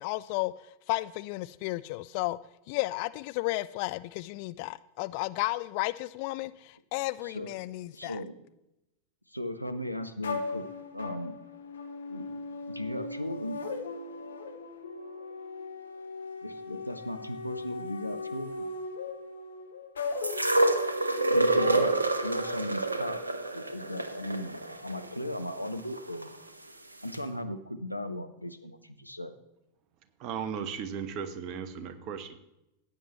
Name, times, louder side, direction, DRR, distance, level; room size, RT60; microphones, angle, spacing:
voice 1, 0.0-2.4 2.7-8.2, left 20 dB, 45° left, 0.3 m, -33 dB
voice 2, 7.2-7.5 7.9-8.4 9.3-10.6 10.9-11.3 12.1-12.4 12.7-13.6 16.4-18.6 21.3-21.9 22.2-23.2 23.5-26.3 27.0-29.3, left 1 dB, 90° left, 0.8 m, -37 dB
sound 1, 10.2-22.5, left 3 dB, 70° left, 1.1 m, -38 dB
sound 2, 20.2-26.3 27.1-27.2, right 2 dB, 80° right, 0.8 m, -28 dB
voice 3, 30.2-32.4, right 7 dB, 40° right, 1.2 m, -36 dB
15.5 x 9.1 x 3.1 m
figure-of-eight pair, 90°, 0 cm